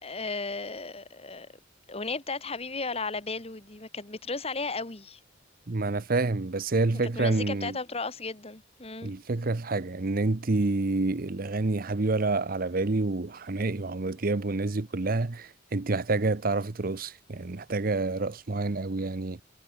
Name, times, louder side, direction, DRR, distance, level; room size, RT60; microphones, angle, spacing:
voice 1, 0.0-1.5 1.9-5.2 7.2-9.1, left 3 dB, 30° left, 2.1 m, -35 dB
voice 2, 5.7-7.8 9.0-19.4, right 3 dB, 50° right, 0.8 m, -28 dB
head